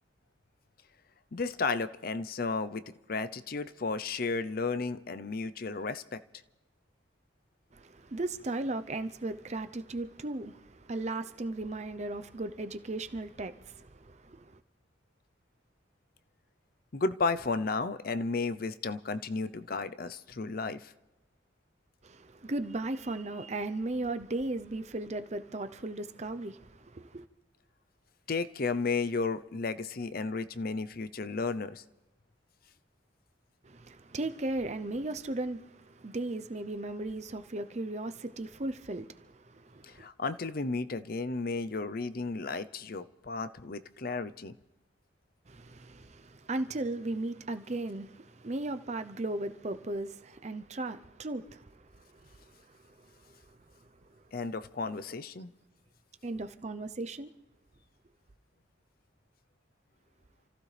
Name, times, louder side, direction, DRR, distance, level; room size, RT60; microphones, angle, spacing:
voice 1, 1.3-2.8 3.1-6.2 16.9-20.9 28.3-31.8 39.9-44.5 54.3-55.5, left 4 dB, 50° left, 0.6 m, -33 dB
voice 2, 7.7-14.6 22.0-27.2 33.6-40.1 45.5-52.3 52.7-53.1 56.2-57.3, right 2 dB, 35° right, 0.7 m, -36 dB
28.5 x 15.0 x 3.3 m
head